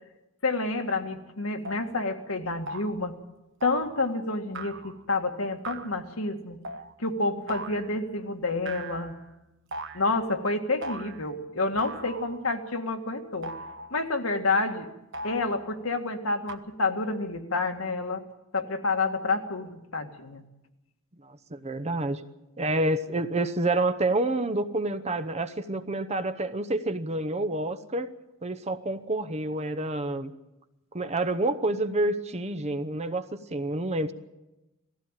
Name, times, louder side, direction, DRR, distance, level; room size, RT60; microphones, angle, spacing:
voice 1, 0.4-3.1 3.6-6.6 7.0-9.1 9.9-13.5 13.9-14.9 15.2-18.2 18.5-20.4, left 3 dB, 75° left, 5 dB, 2.0 m, -29 dB
sound 1, 0.9-1.0 1.6-1.9 2.7-3.0 3.6-4.0 4.5-5.0 5.6-6.0 6.6-6.9 7.5-8.0 8.7-9.3 9.7-10.2 10.8-11.3 11.8-12.5 13.4-14.1 15.1-15.8 16.5-16.6, right 2 dB, 60° right, 1.1 m, -39 dB
voice 2, 21.2-22.2 22.6-28.1 28.4-30.3 30.9-34.1, right 2 dB, 30° right, 11 dB, 0.9 m, -28 dB
19.0 x 15.0 x 9.0 m, 0.98 s
head